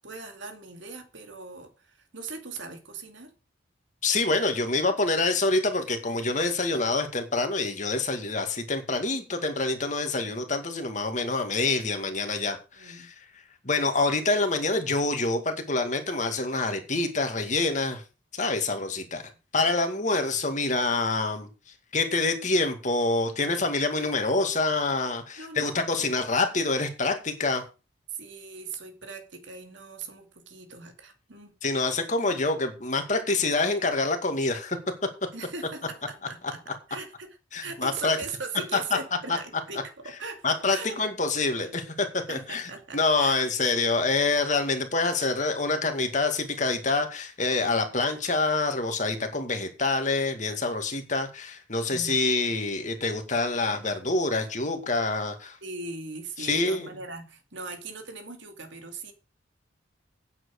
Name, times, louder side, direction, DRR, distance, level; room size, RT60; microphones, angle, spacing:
voice 1, 0.0-3.3 10.3-10.4 12.8-13.1 25.4-26.3 28.1-31.5 35.3-41.0 42.3-43.4 51.9-52.2 55.6-59.1, right 4 dB, 75° right, 2.5 m, -40 dB
voice 2, 4.0-13.1 13.6-18.0 18.3-19.2 19.5-21.5 21.9-27.6 31.6-34.8 37.5-38.2 39.3-39.4 40.4-55.6 56.4-56.9, left 3 dB, 40° left, 2.2 m, -26 dB
9.5 x 7.7 x 6.6 m
head